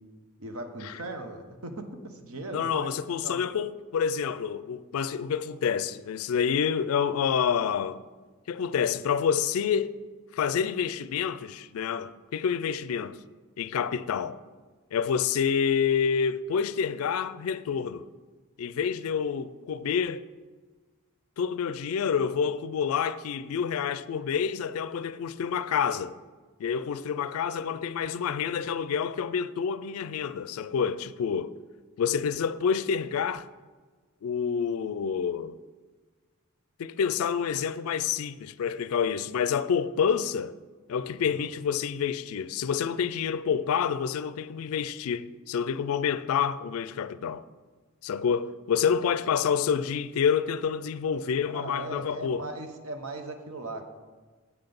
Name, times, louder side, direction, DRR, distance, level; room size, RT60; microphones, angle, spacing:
voice 1, 0.4-2.9 3.2-3.4 41.4-41.5 51.4-53.9, right 2 dB, 75° right, 0.9 m, -38 dB
voice 2, 2.5-8.0 8.5-10.0 10.3-13.2 13.6-14.4 14.9-18.1 18.6-20.3 21.4-26.2 26.6-31.5 32.0-33.5 34.2-35.6 36.8-40.6 40.9-47.4 48.0-52.5, left 7 dB, 80° left, 0.3 m, -28 dB
8.0 x 5.8 x 5.2 m
head